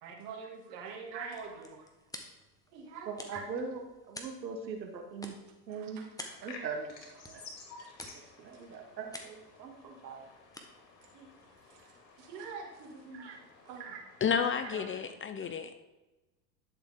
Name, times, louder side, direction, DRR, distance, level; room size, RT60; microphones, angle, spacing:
voice 1, 0.0-1.9 2.7-3.4 5.7-6.3 7.8-8.6 9.7-10.2 11.0-14.4 14.7-14.8, right 5 dB, 65° right, 0 dB, 2.7 m, -47 dB
sound 1, 1.0-12.3, left 1 dB, 5° left, 1.4 m, -52 dB
voice 2, 3.1-5.4 5.7-7.4 8.4-9.7 10.0-10.3 13.1-13.4 14.9-15.0, right 5 dB, 90° right, 4 dB, 1.4 m, -41 dB
sound 2, 6.2-15.1, left 4 dB, 85° left, 2.4 m, -54 dB
voice 3, 14.2-15.9, left 7 dB, 25° left, 10 dB, 0.7 m, -31 dB
11.5 x 6.7 x 3.8 m, 1.1 s
hypercardioid pair, 85°, 50 cm